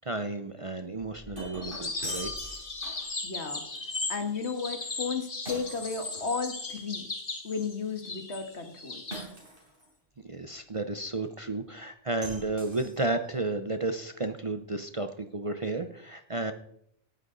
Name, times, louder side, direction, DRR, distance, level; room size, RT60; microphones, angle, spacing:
voice 1, 0.0-2.3 10.2-16.5, right 2 dB, 30° right, 8 dB, 0.7 m, -32 dB
Shatter, 1.0-3.2 5.5-6.7 9.1-9.9 12.2-13.3, equal, 50° right, 4.7 m, -43 dB
sound 1, 1.6-9.2, left 3 dB, 50° left, 2.0 m, -37 dB
voice 2, 3.2-3.7 4.1-7.0 7.4-9.0, left 5 dB, 65° left, 6 dB, 2.0 m, -34 dB
18.0 x 11.0 x 4.0 m, 0.72 s
omnidirectional pair, 1.2 m